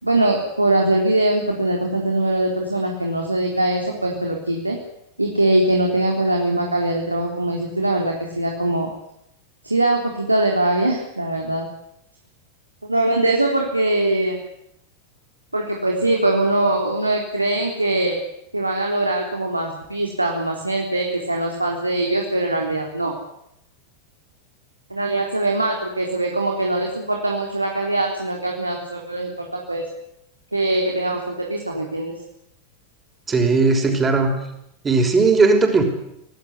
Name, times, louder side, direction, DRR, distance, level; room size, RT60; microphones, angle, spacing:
voice 1, 0.0-4.8 5.2-8.9 9.6-11.6 12.9-14.4 15.5-18.2 18.5-23.2 24.9-29.8 30.5-32.1, right 2 dB, 85° right, 1 dB, 3.9 m, -22 dB
voice 2, 33.3-34.3 34.8-35.8, right 3 dB, 15° right, 4 dB, 6.0 m, -17 dB
26.5 x 18.5 x 9.7 m, 0.79 s
figure-of-eight pair, 90°, 0 cm